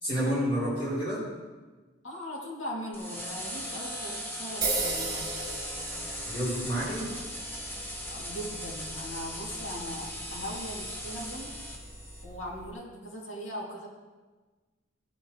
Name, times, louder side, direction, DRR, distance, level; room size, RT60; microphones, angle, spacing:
voice 1, 0.0-1.2 6.3-7.1, equal, 30° left, -10 dB, 3.8 m, -29 dB
voice 2, 2.0-5.4 8.1-11.5 12.2-13.9, equal, 90° left, -3 dB, 2.8 m, -39 dB
sound 1, 2.9-12.2, equal, 10° left, 1.2 m, -38 dB
sound 2, 4.6-12.7, right 3 dB, 20° right, 2.5 m, -38 dB
14.5 x 9.3 x 3.3 m, 1.3 s
head